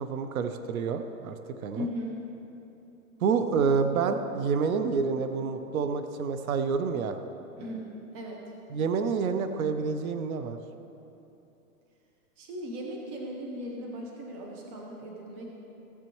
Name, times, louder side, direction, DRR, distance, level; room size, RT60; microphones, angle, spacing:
voice 1, 0.0-1.4 1.6-1.9 3.2-7.2 8.7-10.6, right 5 dB, 70° right, 8 dB, 0.8 m, -28 dB
voice 2, 1.7-2.2 7.6-8.4 12.4-15.5, equal, 25° right, -1 dB, 0.9 m, -38 dB
17.0 x 7.4 x 3.1 m, 2.9 s
hypercardioid pair, 165°, 44 cm